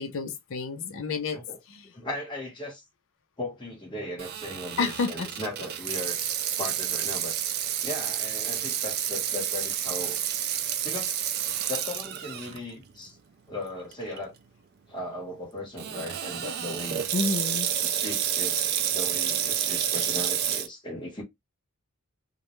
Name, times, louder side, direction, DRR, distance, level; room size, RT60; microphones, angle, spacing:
voice 1, 0.0-1.4 1.7-1.9 4.8-5.3 17.1-17.7, left 4 dB, 60° left, 0.5 m, -30 dB
voice 2, 1.9-2.8 3.4-6.2 6.6-7.3 7.8-10.2 10.8-11.2 11.7-13.2 13.5-14.3 14.9-17.0 17.8-21.2, left 1 dB, 20° left, 1.0 m, -37 dB
Water tap faucet / Sink (filling or washing), 4.2-12.6 13.1-13.2 13.9-14.2 15.8-20.7, right 10 dB, 45° right, 0.3 m, -29 dB
2.3 x 2.1 x 2.9 m
head